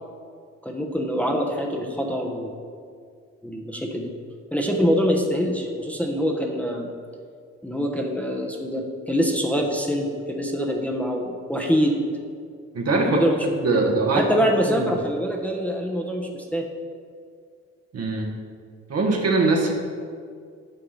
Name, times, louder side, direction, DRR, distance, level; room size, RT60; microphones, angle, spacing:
voice 1, 0.6-2.5 3.4-4.1 4.5-6.9 7.6-12.0 13.0-13.4 13.7-13.8 14.2-16.6, equal, 5° left, 0 dB, 1.1 m, -24 dB
voice 2, 12.7-13.2 13.5-14.3 14.6-14.9 17.9-18.3 18.9-19.7, right 3 dB, 55° right, 1 dB, 1.3 m, -22 dB
9.2 x 3.6 x 5.6 m, 2.1 s
supercardioid pair, 55°, 30 cm